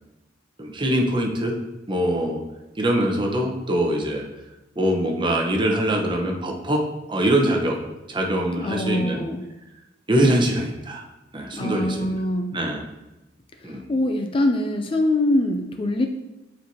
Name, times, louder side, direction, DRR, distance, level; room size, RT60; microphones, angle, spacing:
voice 1, 0.6-1.6 1.9-2.4 2.8-4.3 4.8-6.8 7.1-7.8 8.1-9.2 10.1-11.1 11.3-12.2 12.5-12.8 13.6-13.8, right 1 dB, 25° right, 0 dB, 0.9 m, -23 dB
voice 2, 8.6-9.4 11.5-12.6 13.7-16.1, left 1 dB, 30° left, 5 dB, 0.4 m, -23 dB
7.6 x 4.4 x 2.8 m, 1.0 s
head